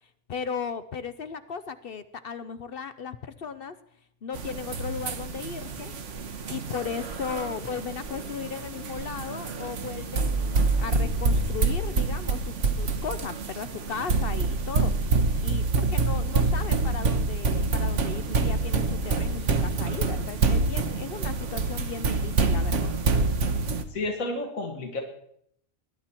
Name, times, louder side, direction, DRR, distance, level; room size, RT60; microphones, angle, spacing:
voice 1, 0.3-3.7 4.2-5.9 6.5-14.9 15.4-23.0, left 6 dB, 55° left, 12 dB, 0.7 m, -36 dB
sound 1, 4.3-23.8, right 3 dB, 60° right, 1.4 m, -27 dB
voice 2, 23.9-25.0, left 2 dB, 70° left, 3 dB, 2.0 m, -31 dB
20.5 x 11.0 x 4.4 m, 0.71 s
omnidirectional pair, 1.4 m